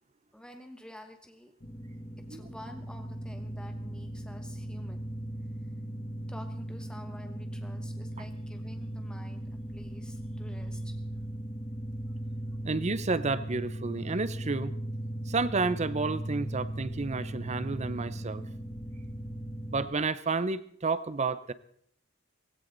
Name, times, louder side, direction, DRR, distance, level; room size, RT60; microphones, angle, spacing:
voice 1, 0.3-1.5 2.3-5.2 6.3-10.9, left 1 dB, 5° left, 5 dB, 1.1 m, -49 dB
sound 1, 1.6-19.9, right 1 dB, 30° left, 1.8 m, -38 dB
voice 2, 12.6-14.7 15.3-18.4 19.7-21.5, right 3 dB, 35° right, 15 dB, 0.7 m, -30 dB
17.0 x 17.0 x 3.9 m, 0.64 s
head